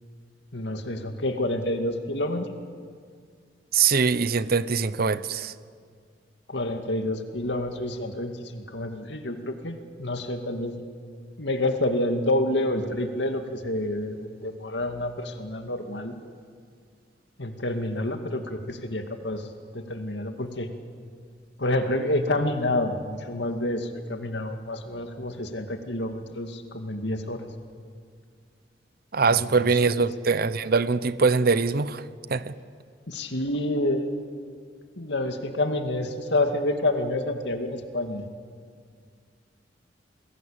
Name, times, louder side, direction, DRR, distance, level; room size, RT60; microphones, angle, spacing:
voice 1, 0.5-2.5 6.5-10.7 11.4-16.2 17.4-19.4 19.7-20.7 21.6-27.5 29.2-30.1 33.1-34.2 35.0-38.3, left 1 dB, 70° left, 5 dB, 2.4 m, -28 dB
voice 2, 3.7-5.5 29.1-32.5, right 5 dB, 55° right, 15 dB, 0.8 m, -23 dB
29.5 x 21.0 x 8.9 m, 2.1 s
head